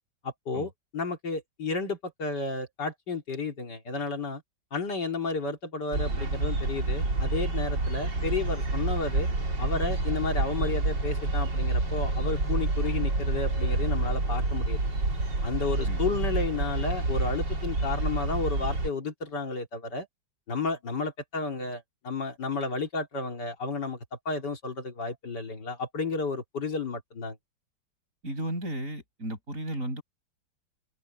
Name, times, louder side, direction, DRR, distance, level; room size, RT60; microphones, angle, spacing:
voice 1, 0.2-4.4 4.7-9.3 9.6-14.8 15.4-20.1 20.5-24.0 24.3-27.4, left 4 dB, 70° left, 3.5 m, -32 dB
sound 1, 5.9-18.9, right 2 dB, 80° right, 4.9 m, -28 dB
voice 2, 28.2-30.0, right 1 dB, 45° right, 6.9 m, -34 dB
open air
omnidirectional pair, 1.9 m